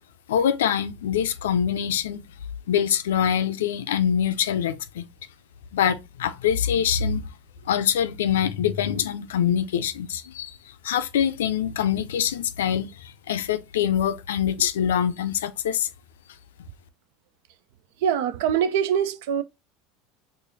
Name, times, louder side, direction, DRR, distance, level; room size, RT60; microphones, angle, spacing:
voice 1, 0.3-2.2 2.7-5.1 5.7-7.3 7.7-10.6 10.8-15.9, left 9 dB, 75° left, 0.4 m, -24 dB
voice 2, 18.0-19.4, right 8 dB, 65° right, 0.4 m, -23 dB
4.7 x 2.5 x 2.6 m
figure-of-eight pair, 75°, 0 cm